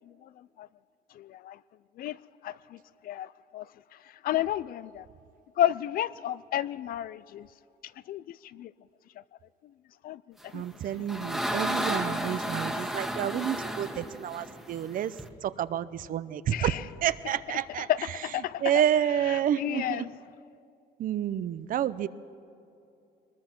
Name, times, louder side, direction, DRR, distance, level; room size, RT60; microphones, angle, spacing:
voice 1, 0.1-0.7 1.1-1.6 2.0-2.2 2.4-3.7 4.2-5.1 5.6-7.5 8.1-8.7 10.0-10.6 16.5-16.8 17.9-18.8 19.3-20.1, left 12 dB, 60° left, 0.5 m, -32 dB
voice 2, 10.5-15.1 15.4-16.7 17.0-17.9 18.6-20.1 21.0-22.1, right 10 dB, 55° right, 0.6 m, -29 dB
sound 1, 10.6-15.3, equal, ahead, 1.5 m, -32 dB
22.0 x 20.0 x 6.0 m
cardioid pair, 110°, 17 cm